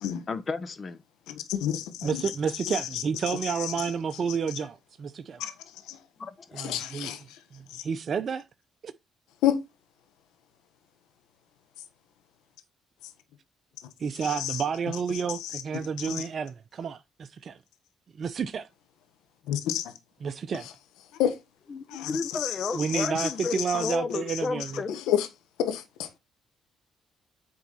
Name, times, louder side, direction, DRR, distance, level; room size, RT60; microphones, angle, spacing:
voice 1, 0.3-1.0 6.2-6.8 21.7-25.0, left 4 dB, 45° left, 1.2 m, -33 dB
voice 2, 1.3-2.2 2.6-3.9 5.4-5.5 5.9-6.0 6.6-7.4 7.7-7.8 9.4-9.6 14.2-14.6 15.4-16.2 19.5-19.9 21.2-21.4 21.9-24.0 24.3-24.4 24.9-25.3 25.6-26.2, left 11 dB, 85° left, 1.4 m, -30 dB
voice 3, 2.0-5.4 6.5-7.1 7.5-8.4 8.8-8.9 14.0-17.6 18.2-18.7 20.2-20.7 22.7-24.8, right 6 dB, 55° right, 0.7 m, -30 dB
9.0 x 4.7 x 4.1 m
supercardioid pair, 65°, 0 cm